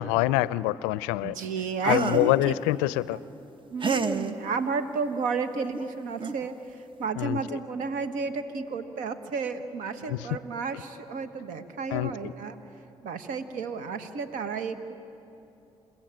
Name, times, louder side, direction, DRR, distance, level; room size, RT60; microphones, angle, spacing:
voice 1, 0.0-1.3 1.8-3.2 7.2-7.4 10.1-10.2 11.9-12.3, left 17 dB, 90° left, 19 dB, 0.4 m, -25 dB
voice 2, 1.2-2.5 3.1-3.2 3.7-12.6 13.0-14.9, right 4 dB, 80° right, 11 dB, 1.2 m, -32 dB
sound 1, 1.8-2.4 3.8-4.3 5.7-5.8 6.2-6.5, right 5 dB, 40° right, 1.0 m, -29 dB
28.5 x 14.5 x 9.0 m, 2.9 s
hypercardioid pair, 45°, 13 cm